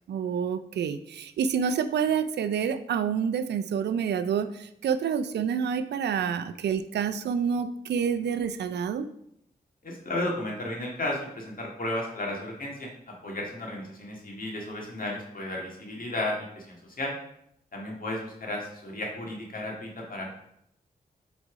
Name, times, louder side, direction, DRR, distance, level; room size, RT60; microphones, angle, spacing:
voice 1, 0.1-9.1, right 7 dB, 85° right, 10 dB, 0.4 m, -28 dB
voice 2, 9.8-12.9 13.2-17.1 17.7-20.3, left 1 dB, 55° left, -1 dB, 1.9 m, -33 dB
4.6 x 4.2 x 5.0 m, 0.74 s
cardioid pair, 40°, 17 cm